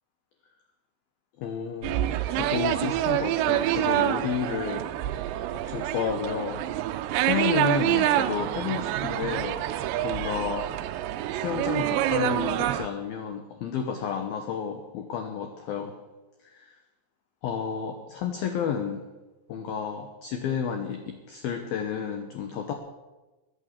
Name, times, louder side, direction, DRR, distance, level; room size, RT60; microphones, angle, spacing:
voice 1, 1.4-6.6 7.1-9.6 10.0-10.7 11.3-16.0 16.4-16.8 17.4-19.0 19.5-22.7, left 7 dB, 80° left, 5 dB, 2.1 m, -31 dB
sound 1, 1.8-12.9, right 13 dB, 85° right, 2.5 m, -27 dB
21.5 x 9.0 x 7.4 m, 1.1 s
omnidirectional pair, 5.9 m